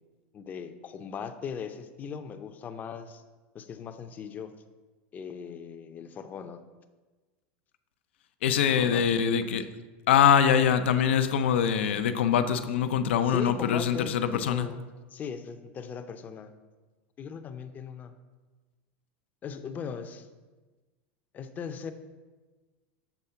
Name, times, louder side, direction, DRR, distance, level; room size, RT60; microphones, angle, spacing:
voice 1, 0.3-3.2 3.5-4.5 5.1-6.6 8.7-9.0 13.3-14.8 15.1-16.5 17.2-18.1 19.4-20.3 21.3-21.9, left 6 dB, 30° left, 8 dB, 0.5 m, -38 dB
voice 2, 8.4-9.6 10.1-14.7, left 8 dB, 90° left, 10 dB, 0.5 m, -23 dB
7.0 x 3.6 x 5.6 m, 1.3 s
supercardioid pair, 130°, 6 cm